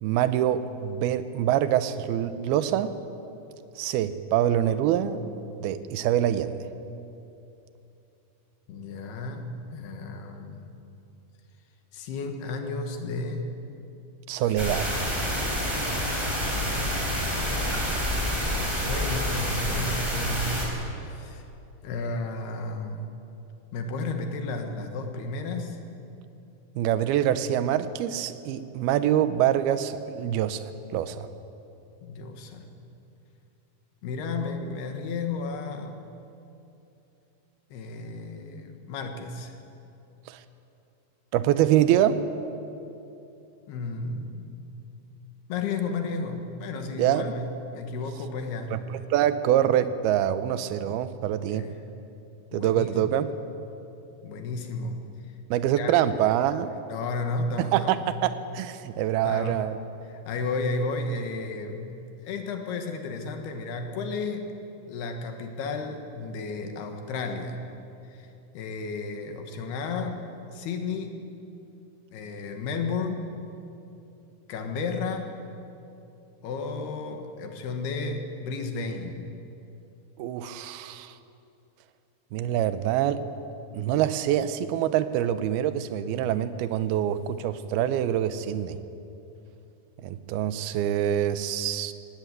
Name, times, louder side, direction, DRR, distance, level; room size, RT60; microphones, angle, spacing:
voice 1, 0.0-2.9 3.8-5.2 5.6-6.7 14.3-14.9 26.8-30.6 30.9-31.3 40.3-40.4 41.3-42.2 47.0-47.3 48.7-51.7 52.5-53.3 55.5-56.7 57.6-59.8 80.2-81.1 82.3-83.2 83.7-88.8 90.0-91.9, right 11 dB, 80° right, 12 dB, 2.6 m, -25 dB
voice 2, 8.7-10.7 11.9-13.5 14.6-14.9 16.3-18.0 18.4-20.6 21.0-21.4 21.8-23.0 23.7-25.8 32.0-32.7 34.0-36.0 37.7-39.5 43.7-44.7 45.5-48.8 51.5-51.8 52.5-52.9 54.2-55.0 55.8-56.0 56.9-58.1 59.2-59.5 60.1-61.8 62.2-64.5 64.9-67.6 68.1-68.3 68.6-70.2 70.5-71.3 72.1-73.2 74.5-75.4 76.4-79.2 88.5-88.6, left 3 dB, 80° left, 5 dB, 3.5 m, -33 dB
sound 1, 14.6-20.6, equal, 5° right, 3.8 m, -28 dB
18.5 x 17.5 x 8.3 m, 2.8 s
omnidirectional pair, 4.7 m